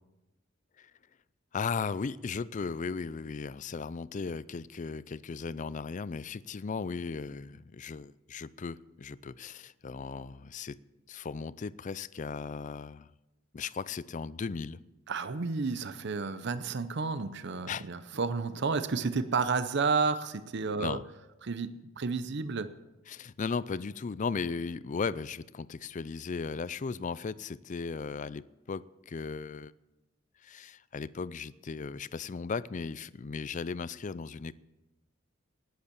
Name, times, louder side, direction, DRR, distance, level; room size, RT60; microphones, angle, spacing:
voice 1, 1.5-10.8 11.1-13.1 13.5-14.8 17.7-17.9 20.8-21.0 23.1-29.7 30.4-34.5, left 5 dB, 40° left, 18 dB, 0.4 m, -36 dB
voice 2, 15.1-21.0 21.4-22.7, right 4 dB, 60° right, 12 dB, 0.7 m, -31 dB
19.5 x 8.1 x 6.9 m, 1.0 s
head